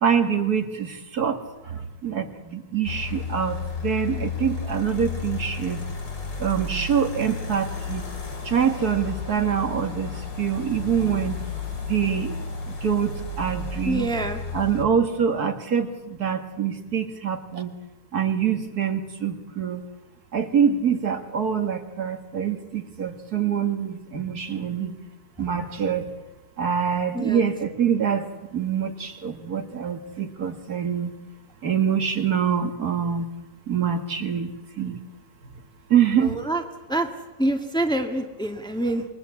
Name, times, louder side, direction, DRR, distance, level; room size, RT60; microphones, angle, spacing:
voice 1, 0.0-5.8 6.4-8.0 8.4-11.4 11.8-12.4 12.7-14.1 14.5-17.7 18.1-19.8 20.3-24.9 25.4-26.1 26.6-31.1 31.6-33.3 33.7-35.0 35.9-36.3, right 7 dB, 60° right, 7 dB, 2.2 m, -25 dB
sound 1, 2.8-14.8, left 4 dB, 80° left, 4.1 m, -32 dB
voice 2, 13.8-14.4 27.1-27.5 36.2-36.6 36.9-37.1 37.4-39.1, right 1 dB, ahead, 5 dB, 1.8 m, -26 dB
28.0 x 22.0 x 8.5 m, 1.0 s
omnidirectional pair, 1.9 m